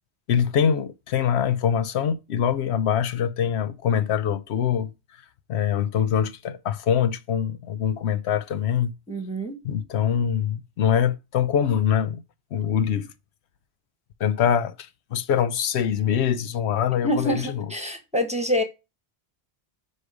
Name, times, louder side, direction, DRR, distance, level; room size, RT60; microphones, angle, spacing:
voice 1, 0.3-4.9 5.5-8.9 9.6-12.2 12.5-13.1 14.2-17.7, left 8 dB, 80° left, 0.9 m, -24 dB
voice 2, 9.1-9.6 17.0-18.6, equal, 5° right, 1.1 m, -26 dB
9.6 x 3.3 x 4.8 m
omnidirectional pair, 1.1 m